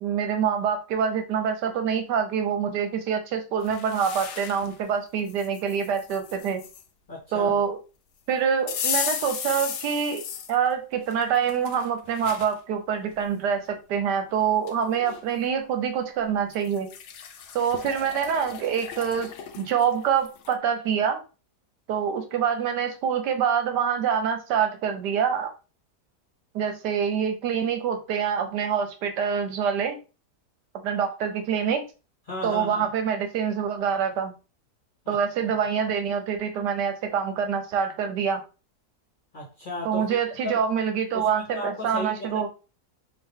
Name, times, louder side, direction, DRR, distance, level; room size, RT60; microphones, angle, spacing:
voice 1, 0.0-6.6 7.3-7.8 8.3-16.9 17.5-21.2 21.9-25.5 26.5-30.0 30.8-31.8 32.4-34.3 35.1-38.4 39.8-42.5, right 7 dB, 80° right, 6 dB, 1.3 m, -26 dB
sound 1, 3.6-4.8 5.3-6.8 8.7-10.6 11.1-12.5 13.1-13.2 14.3-14.4 14.7-15.2 16.5-20.6, left 7 dB, 90° left, 0.6 m, -35 dB
voice 2, 7.1-7.6 32.3-32.9 35.0-35.1 39.3-40.6 41.1-42.5, left 1 dB, 40° left, -2 dB, 0.8 m, -35 dB
3.8 x 2.7 x 3.5 m, 0.32 s
omnidirectional pair, 1.8 m